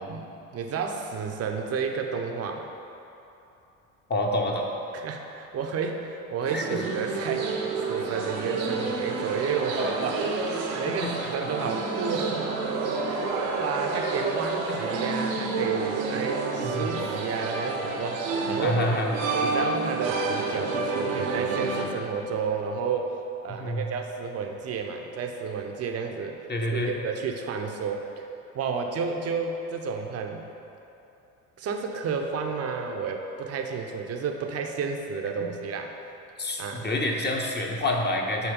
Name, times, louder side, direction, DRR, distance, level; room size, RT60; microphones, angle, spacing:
voice 1, 0.0-2.7 4.9-10.3 10.7-12.5 13.0-18.8 19.4-23.2 23.4-26.5 26.7-28.3 28.5-30.5 31.6-35.9 36.6-36.9, right 5 dB, 35° right, 3 dB, 0.7 m, -31 dB
voice 2, 4.1-4.7 6.5-6.8 10.9-11.5 13.9-14.1 14.7-14.8 16.6-17.0 18.6-19.1 23.5-23.8 26.5-26.9 35.4-35.5 36.4-38.5, left 1 dB, 25° left, 0 dB, 1.0 m, -28 dB
sound 1, 6.4-21.8, right 3 dB, 65° right, 0.9 m, -29 dB
8.9 x 3.1 x 5.3 m, 2.9 s
figure-of-eight pair, 60°, 43 cm